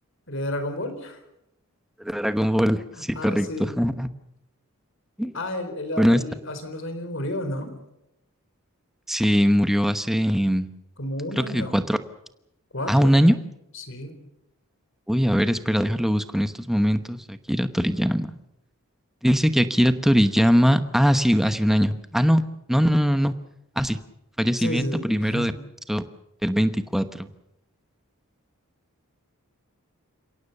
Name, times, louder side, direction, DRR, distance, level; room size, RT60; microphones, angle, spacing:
voice 1, 0.3-1.2 2.9-3.8 5.3-7.7 11.0-11.8 12.7-12.9 13.7-14.1 24.6-25.6, left 1 dB, 60° left, 9 dB, 4.1 m, -31 dB
voice 2, 2.0-4.1 5.2-5.3 6.0-6.2 9.1-10.7 11.4-12.0 12.9-13.4 15.1-18.3 19.2-22.4 22.7-23.3 23.8-24.0 24.4-25.5 25.9-26.0 26.4-27.3, equal, ahead, 10 dB, 1.0 m, -21 dB
30.0 x 17.5 x 6.7 m, 0.84 s
head